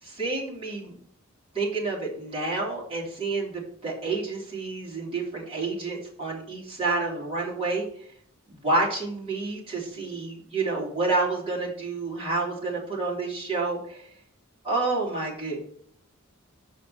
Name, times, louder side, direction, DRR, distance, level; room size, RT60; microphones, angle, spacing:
voice 1, 0.0-1.0 1.5-7.9 8.5-14.1 14.6-15.6, right 3 dB, 25° right, -5 dB, 3.6 m, -29 dB
6.4 x 6.2 x 7.1 m, 0.63 s
head